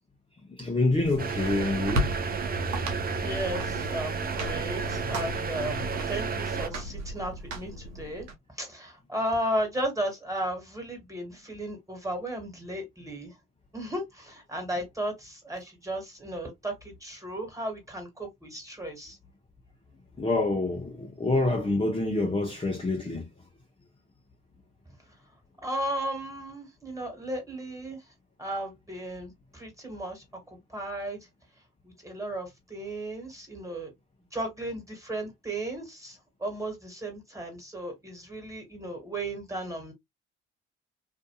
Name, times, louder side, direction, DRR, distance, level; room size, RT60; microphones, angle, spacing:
voice 1, 0.5-2.1 20.2-23.3, left 2 dB, 20° left, 0.9 m, -27 dB
sound 1, 0.9-8.3, right 1 dB, 70° right, 1.0 m, -35 dB
sound 2, 1.2-6.7, right 5 dB, 30° right, 0.6 m, -32 dB
voice 2, 3.2-8.3 8.5-13.3 13.7-19.2 25.6-28.0 28.4-30.2 30.7-31.3 31.8-33.9 34.3-39.9, right 1 dB, 10° right, 1.8 m, -35 dB
2.7 x 2.5 x 2.3 m
hypercardioid pair, 50°, 29 cm